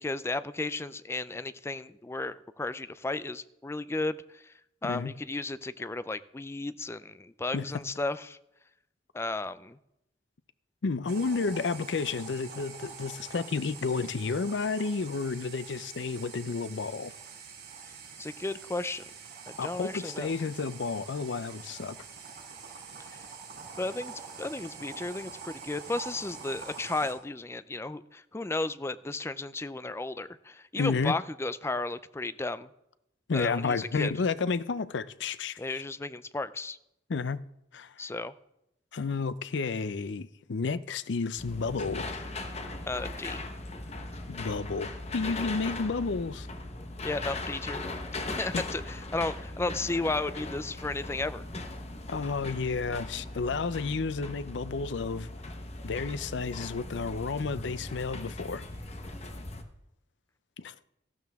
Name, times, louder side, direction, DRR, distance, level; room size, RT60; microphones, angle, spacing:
voice 1, 0.0-4.5 4.8-8.4 9.1-9.8 18.2-19.0 19.5-20.3 23.1-23.2 23.8-32.7 33.3-34.1 35.6-36.8 38.0-38.3 42.9-43.4 47.0-47.8 48.4-51.4, left 2 dB, 15° left, 0.4 m, -34 dB
voice 2, 10.8-17.1 19.6-22.0 30.8-31.1 33.3-35.8 37.1-37.4 37.7-37.9 38.9-42.2 44.3-46.5 48.5-48.6 52.1-55.3 55.8-58.6 60.6-60.7, left 4 dB, 65° left, 0.5 m, -31 dB
sound 1, 11.1-27.1, right 5 dB, 55° right, 4.9 m, -45 dB
sound 2, 41.4-59.6, left 2 dB, 35° left, 1.1 m, -39 dB
14.5 x 12.5 x 3.5 m
head